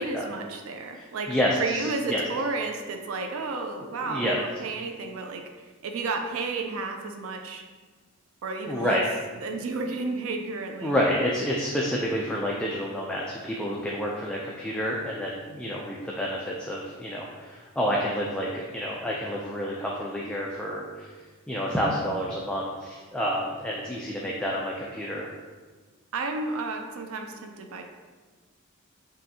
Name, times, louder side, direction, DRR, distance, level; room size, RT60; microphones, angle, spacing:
voice 1, 0.0-5.4 5.8-7.6 8.4-9.0 9.4-11.0 26.1-27.8, right 3 dB, 75° right, 5 dB, 0.4 m, -32 dB
voice 2, 0.9-2.2 4.0-4.4 8.7-9.1 10.8-21.1 21.5-25.3, equal, 5° left, -4 dB, 0.3 m, -29 dB
5.5 x 2.6 x 2.7 m, 1.4 s
head